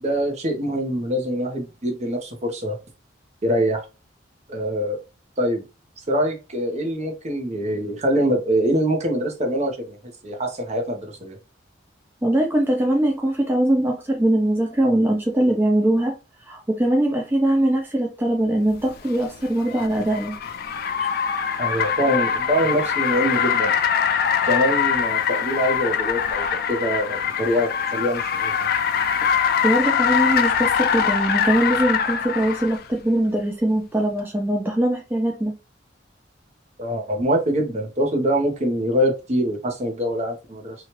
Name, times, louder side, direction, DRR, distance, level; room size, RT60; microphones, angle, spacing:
voice 1, 0.0-2.8 3.4-3.8 4.5-5.0 5.4-5.6 6.1-10.0 10.2-11.4 21.6-23.7 24.4-28.5 36.8-40.7, equal, 40° right, 0.8 m, -24 dB
voice 2, 12.2-16.2 16.4-20.4 29.3-35.6, right 1 dB, 10° right, 0.4 m, -21 dB
Car, 18.9-32.8, left 7 dB, 55° left, 0.4 m, -23 dB
2.9 x 2.3 x 3.0 m
head